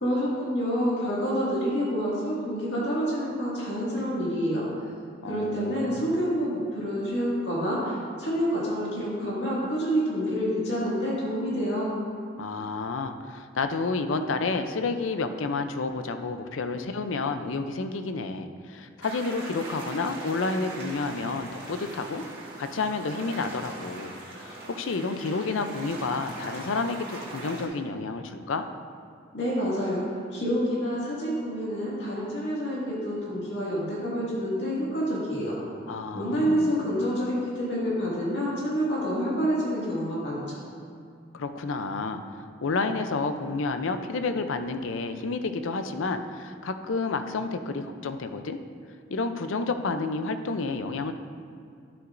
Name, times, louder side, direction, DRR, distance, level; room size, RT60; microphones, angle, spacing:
voice 1, 0.0-4.6 5.3-11.9 29.3-30.0 30.3-35.5 36.1-40.6, equal, 60° left, -6 dB, 2.1 m, -28 dB
voice 2, 5.2-6.1 12.4-22.2 22.6-28.7 35.9-36.8 41.3-42.2 42.6-48.6 49.1-51.1, left 3 dB, 80° left, 8 dB, 0.5 m, -30 dB
sound 1, 19.0-27.7, right 2 dB, 55° right, 1.9 m, -41 dB
11.0 x 7.8 x 2.6 m, 2.3 s
head